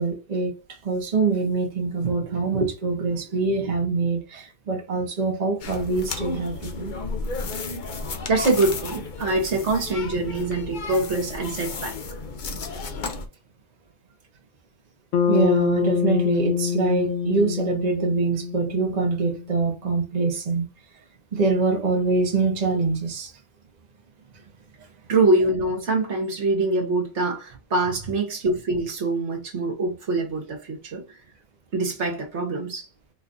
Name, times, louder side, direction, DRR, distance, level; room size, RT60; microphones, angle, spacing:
voice 1, 0.0-6.9 15.3-20.6 21.3-23.3, right 3 dB, 35° right, 1.0 m, -24 dB
sound 1, 5.6-13.3, left 3 dB, 50° left, 0.7 m, -33 dB
voice 2, 8.3-11.9 25.1-31.0 31.7-32.9, right 2 dB, 60° right, 1.4 m, -24 dB
Bass guitar, 15.1-19.5, left 8 dB, 75° left, 1.0 m, -25 dB
4.1 x 2.4 x 3.9 m
omnidirectional pair, 1.3 m